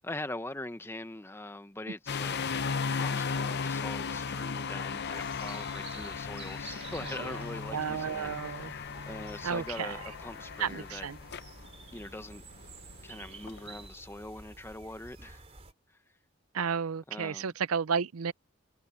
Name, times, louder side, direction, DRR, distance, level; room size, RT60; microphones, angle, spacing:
voice 1, 0.0-2.6 2.9-11.1 11.9-12.4 13.0-15.4 17.1-17.5, left 1 dB, 10° left, 0.9 m, -42 dB
sound 1, 2.1-13.9, left 5 dB, 50° left, 0.7 m, -36 dB
sound 2, 5.1-15.7, right 3 dB, 30° right, 3.1 m, -50 dB
voice 2, 7.7-8.7 9.4-10.0 10.6-11.2 16.5-18.3, right 6 dB, 85° right, 0.6 m, -32 dB
head